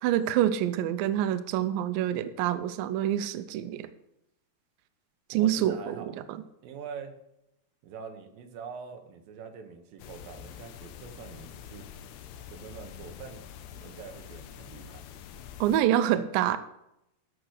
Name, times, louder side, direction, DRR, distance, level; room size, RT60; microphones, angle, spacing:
voice 1, 0.0-3.9 5.3-6.1 15.6-16.6, right 11 dB, 90° right, 12 dB, 2.0 m, -26 dB
voice 2, 5.3-6.2 6.6-7.1 7.8-11.9 12.5-13.4 13.7-15.1 16.1-16.2, right 6 dB, 70° right, 6 dB, 2.6 m, -44 dB
sound 1, 10.0-15.8, left 9 dB, 85° left, 2.9 m, -46 dB
13.0 x 5.9 x 6.4 m, 0.83 s
omnidirectional pair, 4.8 m